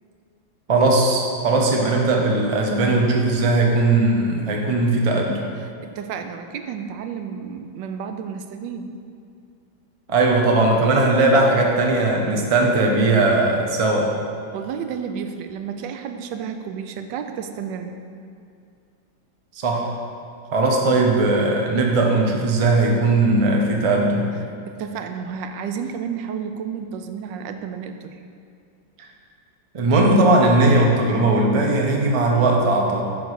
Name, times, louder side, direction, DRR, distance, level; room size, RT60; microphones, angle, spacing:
voice 1, 0.7-5.4 10.1-14.1 19.6-19.9 20.5-24.3 29.7-33.0, right 2 dB, 35° right, 0 dB, 0.5 m, -18 dB
voice 2, 5.6-8.9 14.5-18.0 24.4-28.2, right 7 dB, 80° right, 7 dB, 1.3 m, -31 dB
9.5 x 3.9 x 6.4 m, 2.4 s
omnidirectional pair, 2.0 m